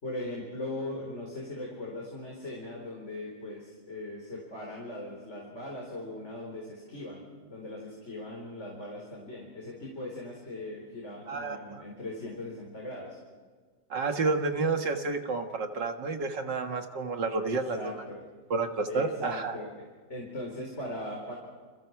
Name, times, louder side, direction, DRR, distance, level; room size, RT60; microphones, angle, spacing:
voice 1, 0.0-13.2 17.4-18.2 18.9-19.7 20.1-21.3, left 1 dB, 35° left, -2 dB, 4.7 m, -39 dB
voice 2, 11.3-11.8 13.9-17.9 18.5-19.6, right 3 dB, 70° right, 5 dB, 2.4 m, -30 dB
29.5 x 29.0 x 4.8 m, 1.5 s
omnidirectional pair, 2.0 m